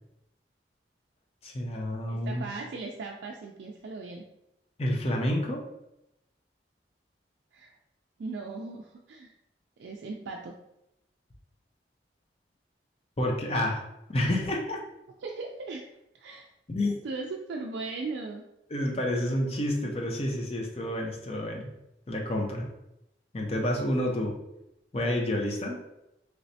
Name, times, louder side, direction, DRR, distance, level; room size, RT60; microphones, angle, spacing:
voice 1, 1.4-2.4 4.8-5.6 13.2-13.8 14.1-14.8 16.7-16.9 18.7-21.7 22.1-22.7 23.3-24.3 24.9-25.8, left 1 dB, 35° left, 1 dB, 0.5 m, -29 dB
voice 2, 2.1-4.3 7.5-7.7 8.2-9.3 9.8-10.5 15.2-15.9 16.1-16.5 17.0-18.4, right 3 dB, 80° right, 1 dB, 0.3 m, -38 dB
3.1 x 3.1 x 2.7 m, 0.87 s
head